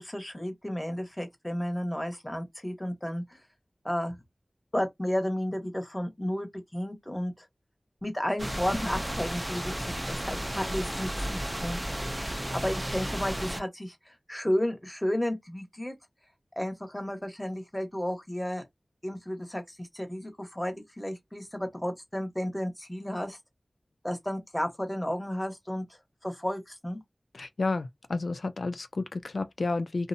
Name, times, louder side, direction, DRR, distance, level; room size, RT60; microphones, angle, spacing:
voice 1, 0.0-3.4 3.8-4.2 4.7-7.5 8.0-15.9 16.6-18.6 19.0-23.4 24.0-25.8 26.2-27.0, equal, 10° left, 0.9 m, -33 dB
sound 1, 8.4-13.6, equal, 15° right, 0.5 m, -33 dB
voice 2, 27.3-30.1, left 3 dB, 90° left, 0.3 m, -31 dB
2.5 x 2.0 x 2.6 m
wide cardioid pair, 45°, 0 cm